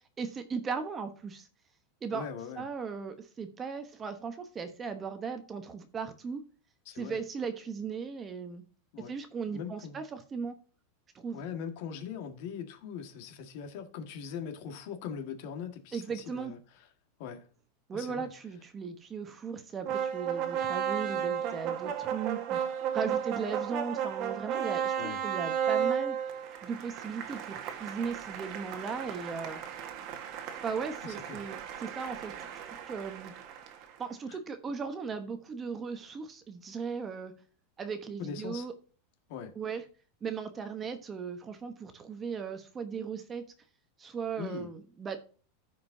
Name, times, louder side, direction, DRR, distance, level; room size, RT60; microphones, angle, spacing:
voice 1, 0.2-1.5 2.0-2.2 2.6-6.4 6.9-8.6 9.1-10.5 11.1-11.4 15.9-16.5 17.9-22.6 22.9-26.2 26.6-29.6 30.6-32.3 32.8-33.3 34.0-37.3 37.8-38.7 39.5-39.8 40.2-43.4 44.0-45.2, right 5 dB, 20° right, 1.0 m, -37 dB
voice 2, 2.1-2.6 6.9-7.2 8.9-9.1 9.5-10.0 11.3-16.6 17.2-17.5 17.9-18.3 23.1-23.2 25.0-25.2 31.0-31.5 34.3-34.4 38.2-38.7 39.3-39.5 44.4-44.7, left 7 dB, 55° left, 1.7 m, -41 dB
sound 1, 19.8-34.0, right 8 dB, 40° right, 1.5 m, -34 dB
15.0 x 5.1 x 2.7 m
supercardioid pair, 155°, 0 cm